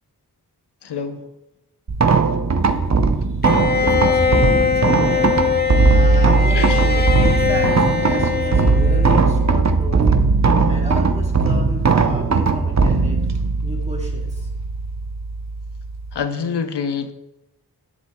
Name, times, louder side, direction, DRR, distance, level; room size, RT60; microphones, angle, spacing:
voice 1, 0.8-1.2 6.5-6.8 16.1-17.1, left 6 dB, 90° left, 9 dB, 0.6 m, -26 dB
sound 1, 1.9-16.1, right 4 dB, 45° right, 0.6 m, -18 dB
voice 2, 2.6-13.2 13.6-14.5, equal, 15° right, -1 dB, 1.9 m, -33 dB
Bowed string instrument, 3.4-9.5, left 7 dB, 25° left, 0.6 m, -21 dB
10.5 x 7.5 x 2.3 m, 0.96 s
wide cardioid pair, 45°, 39 cm